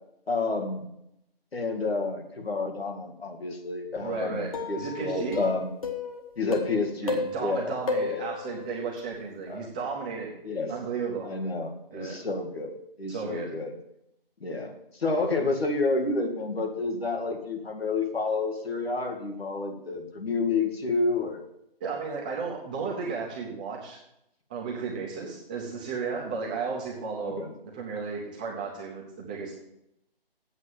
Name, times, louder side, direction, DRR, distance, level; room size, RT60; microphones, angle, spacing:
voice 1, 0.3-0.9 1.5-5.7 6.4-7.7 8.0-8.3 9.5-9.7 10.4-10.7 11.2-13.8 14.4-14.7 15.0-21.4 27.2-27.5, left 3 dB, 85° left, 2 dB, 2.3 m, -29 dB
voice 2, 4.0-5.4 7.0-10.4 10.7-11.3 11.9-12.2 13.1-13.5 21.8-24.0 24.5-27.4 27.7-29.5, right 5 dB, 10° right, -2 dB, 0.6 m, -34 dB
sound 1, 4.5-6.2 6.5-7.5 7.9-9.0, left 3 dB, 35° left, 1.3 m, -32 dB
8.2 x 7.3 x 7.3 m, 0.81 s
figure-of-eight pair, 155°, 30 cm